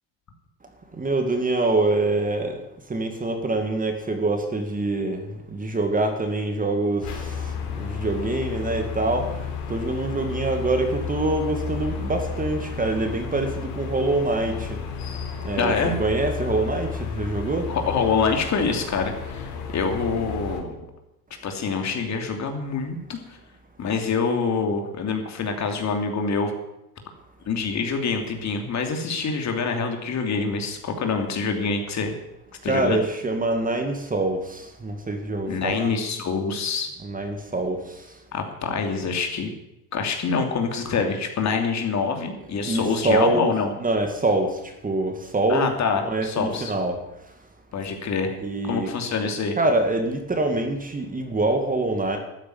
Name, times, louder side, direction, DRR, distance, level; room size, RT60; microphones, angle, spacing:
voice 1, 1.0-2.6 2.9-5.2 5.5-7.5 7.8-9.3 9.7-14.8 15.4-17.7 32.6-35.9 37.0-37.8 42.6-43.5 43.8-44.6 44.8-45.7 46.0-47.0 48.4-48.9 49.6-52.2, right 2 dB, 20° right, 5 dB, 2.2 m, -25 dB
sound 1, 7.0-20.6, left 6 dB, 85° left, 4.3 m, -32 dB
voice 2, 15.6-16.0 17.7-20.8 21.4-23.4 23.8-26.5 27.5-32.1 32.6-33.0 35.5-36.9 38.3-39.5 39.9-43.7 45.5-46.7 47.7-48.4 48.6-49.6, left 5 dB, 40° left, 4 dB, 2.9 m, -26 dB
13.0 x 9.9 x 9.5 m, 0.88 s
supercardioid pair, 120°, 44 cm